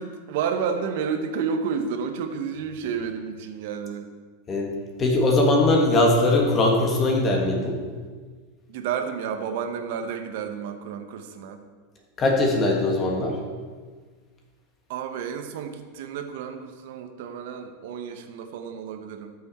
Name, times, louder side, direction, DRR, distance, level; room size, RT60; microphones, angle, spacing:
voice 1, 0.0-4.1 8.7-11.6 14.9-19.3, right 6 dB, 65° right, 7 dB, 1.0 m, -31 dB
voice 2, 5.0-7.8 12.2-13.4, left 2 dB, 25° left, 0 dB, 1.7 m, -20 dB
13.5 x 6.3 x 4.3 m, 1.5 s
supercardioid pair, 145°, 0 cm